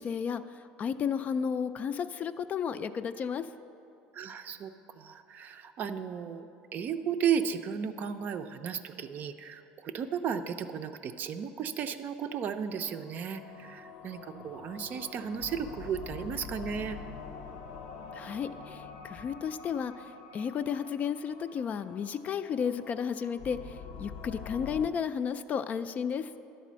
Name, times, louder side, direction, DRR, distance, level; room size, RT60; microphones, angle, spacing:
voice 1, 0.0-3.5 18.1-26.3, left 7 dB, 40° left, 11 dB, 0.3 m, -33 dB
voice 2, 4.1-17.0, right 7 dB, 45° right, 9 dB, 0.5 m, -34 dB
sound 1, 12.6-24.9, left 5 dB, 85° left, 0.8 m, -46 dB
11.0 x 4.1 x 7.3 m, 2.7 s
supercardioid pair, 110°, 4 cm